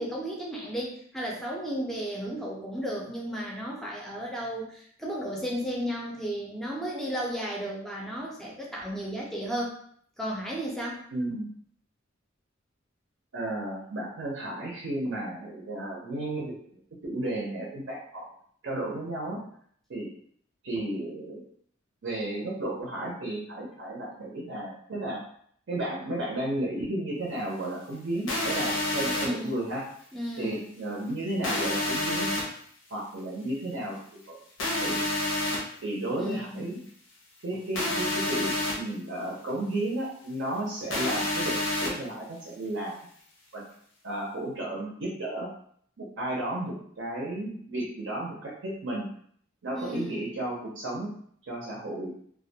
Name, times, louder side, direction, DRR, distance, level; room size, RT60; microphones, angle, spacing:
voice 1, 0.0-9.7 10.2-11.0 29.1-29.7 30.1-30.7 36.1-36.8 49.8-50.4, equal, ahead, -3 dB, 0.5 m, -34 dB
voice 2, 11.1-11.5 13.3-16.5 17.0-18.3 18.6-19.4 19.9-20.1 20.6-21.4 22.0-25.2 25.7-29.8 30.4-32.3 32.9-34.4 34.8-35.0 35.8-36.8 37.4-43.1 43.5-43.7 44.0-45.5 46.0-49.1 49.6-51.1 51.5-52.1, right 1 dB, 65° right, -3 dB, 0.5 m, -33 dB
sound 1, 28.3-29.3 31.4-32.4 34.6-35.6 37.7-38.7 40.9-41.9, left 1 dB, 75° left, 0.7 m, -28 dB
2.3 x 2.1 x 2.7 m, 0.62 s
head